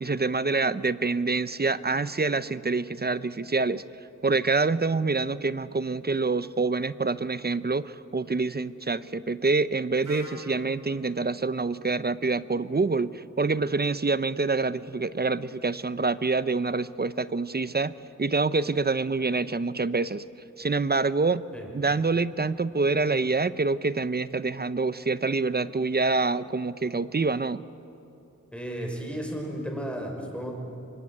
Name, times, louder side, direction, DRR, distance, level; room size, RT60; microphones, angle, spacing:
voice 1, 0.0-3.8 4.2-17.9 18.2-20.2 20.6-21.4 21.7-27.6, right 3 dB, 30° right, 15 dB, 0.6 m, -26 dB
Wind instrument woodwind instrument, 10.0-13.9, right 1 dB, 80° right, 6.2 m, -47 dB
voice 2, 28.5-30.6, equal, 5° left, 1 dB, 5.6 m, -34 dB
25.0 x 23.0 x 9.7 m, 3.0 s
wide cardioid pair, 85°, 31 cm